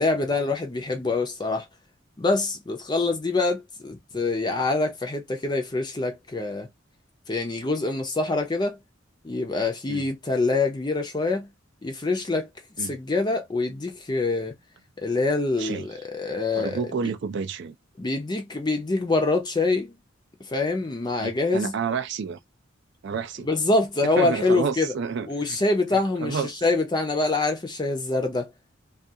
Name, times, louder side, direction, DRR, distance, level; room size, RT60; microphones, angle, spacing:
voice 1, 0.0-1.6 2.2-6.7 7.3-8.8 9.2-11.5 11.8-12.5 12.8-14.5 15.0-16.8 18.0-20.0 20.5-21.7 23.4-24.9 25.3-28.5, left 3 dB, 20° left, 0.5 m, -25 dB
voice 2, 16.5-17.7 21.2-22.4 23.0-23.5 24.0-25.6 25.9-26.5, right 6 dB, 60° right, 0.4 m, -30 dB
2.4 x 2.3 x 2.7 m
head